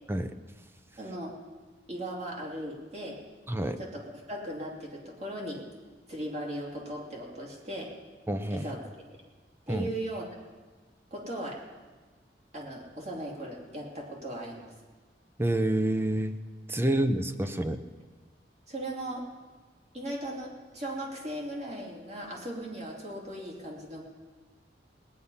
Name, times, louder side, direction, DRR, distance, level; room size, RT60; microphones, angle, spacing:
voice 1, 1.0-1.3 1.9-3.2 3.8-5.6 6.1-7.9 8.5-8.8 9.7-10.2 11.1-11.6 12.5-14.7 16.9-17.0 18.7-19.2 19.9-24.0, right 1 dB, 40° right, -2 dB, 2.8 m, -37 dB
voice 2, 3.5-3.8 8.3-8.7 9.7-9.9 15.4-16.4 16.7-17.9, right 1 dB, 15° right, 9 dB, 0.6 m, -28 dB
19.0 x 9.8 x 5.6 m, 1.4 s
head